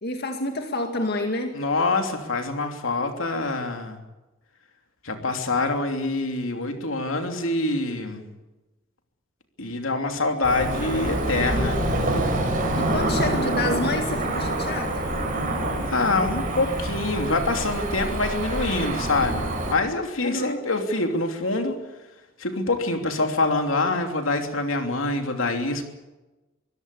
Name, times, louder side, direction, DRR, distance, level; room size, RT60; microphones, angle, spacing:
voice 1, 0.0-1.6 12.8-15.0 20.2-20.6, left 2 dB, 55° left, 4 dB, 2.2 m, -28 dB
voice 2, 1.5-4.0 5.0-8.2 9.6-11.8 15.9-21.7 22.4-25.8, left 2 dB, 75° left, 5 dB, 3.0 m, -25 dB
Cricket / Motor vehicle (road), 10.4-19.7, right 1 dB, 45° right, 6.2 m, -26 dB
24.5 x 16.0 x 8.4 m, 1.1 s
head